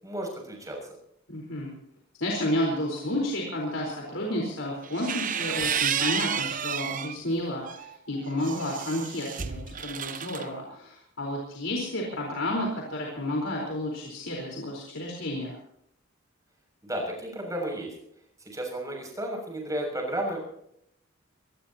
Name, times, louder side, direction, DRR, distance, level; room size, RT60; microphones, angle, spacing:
voice 1, 0.0-0.8 16.8-17.9 18.4-20.5, right 1 dB, 15° right, 1 dB, 6.7 m, -33 dB
voice 2, 1.3-1.7 2.2-15.5, left 1 dB, 70° left, -2 dB, 4.3 m, -31 dB
sound 1, 4.8-7.2 7.6-10.5, right 8 dB, 40° right, 0.8 m, -31 dB
23.5 x 19.5 x 2.9 m, 0.73 s
head